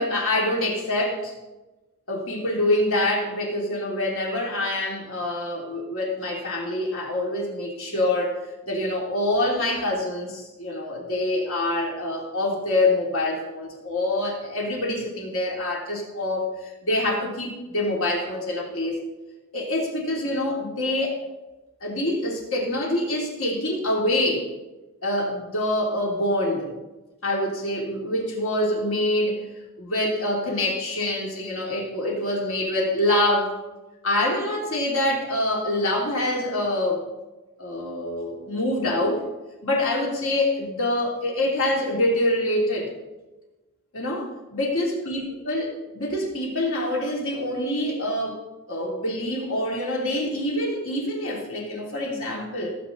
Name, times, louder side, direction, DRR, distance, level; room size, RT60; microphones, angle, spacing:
voice 1, 0.0-1.3 2.1-16.5 16.8-19.0 19.5-21.2 21.8-24.5 25.0-26.7 27.2-29.5 29.8-33.5 34.0-37.1 37.6-39.2 39.6-42.9 43.9-48.4 48.7-52.8, left 1 dB, 65° left, -2 dB, 3.0 m, -25 dB
17.0 x 7.6 x 4.0 m, 1.1 s
head